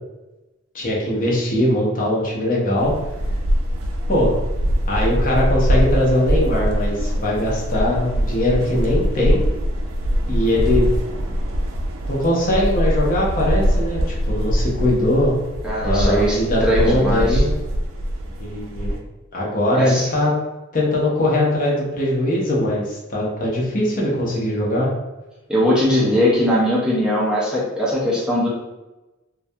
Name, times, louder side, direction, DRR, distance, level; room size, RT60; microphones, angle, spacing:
voice 1, 0.7-2.9 4.1-4.3 4.9-9.4 10.3-10.9 12.1-15.4 15.8-17.5 18.4-19.0 19.3-20.3 20.7-24.9, left 1 dB, 45° left, -4 dB, 0.6 m, -21 dB
sound 1, 2.8-19.0, equal, 85° right, 0.3 m, -22 dB
voice 2, 15.6-17.4 19.8-20.1 25.5-28.5, equal, 5° right, -7 dB, 0.5 m, -20 dB
2.2 x 2.1 x 2.6 m, 1.1 s
head